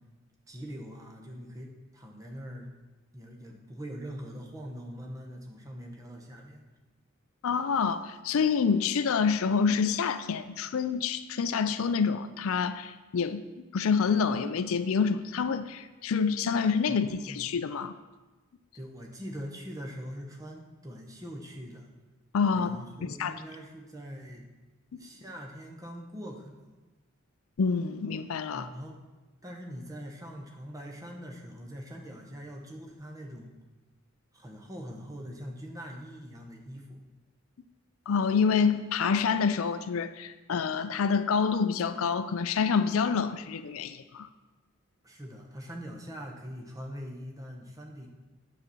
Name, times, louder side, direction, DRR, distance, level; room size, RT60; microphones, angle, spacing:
voice 1, 0.5-2.7 3.1-6.6 16.9-17.5 18.7-21.9 22.5-24.4 25.0-26.7 28.5-29.0 29.4-33.5 34.3-37.0 45.0-48.1, equal, 15° right, 0 dB, 1.0 m, -43 dB
voice 2, 7.4-13.4 13.7-17.9 22.3-23.4 27.6-28.7 38.1-44.3, left 5 dB, 75° left, 12 dB, 0.4 m, -27 dB
9.0 x 4.3 x 6.9 m, 1.2 s
head